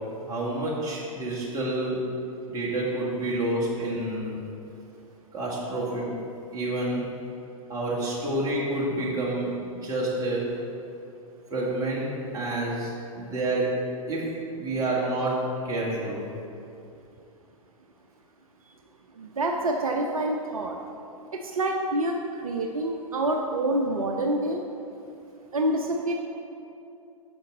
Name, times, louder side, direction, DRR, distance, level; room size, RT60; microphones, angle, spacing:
voice 1, 0.3-2.0 2.5-4.3 5.3-6.1 6.5-7.0 7.7-10.4 11.5-13.7 14.1-14.2 14.5-16.3, right 2 dB, 20° right, -5 dB, 1.8 m, -28 dB
voice 2, 19.2-20.8 21.4-24.6 25.5-26.1, right 1 dB, 70° right, 2 dB, 0.6 m, -27 dB
9.0 x 6.1 x 3.9 m, 2.7 s
figure-of-eight pair, 100°, 19 cm